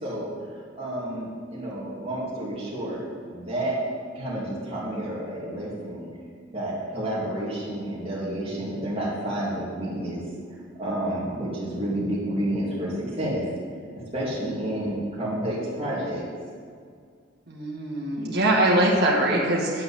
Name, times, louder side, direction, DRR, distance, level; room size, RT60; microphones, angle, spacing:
voice 1, 0.0-3.8 4.1-6.1 6.5-10.2 10.5-13.4 14.1-16.2, right 1 dB, 30° right, -7 dB, 2.4 m, -30 dB
voice 2, 17.5-19.8, right 1 dB, 55° right, -3 dB, 1.9 m, -22 dB
9.5 x 5.9 x 7.1 m, 2.1 s
head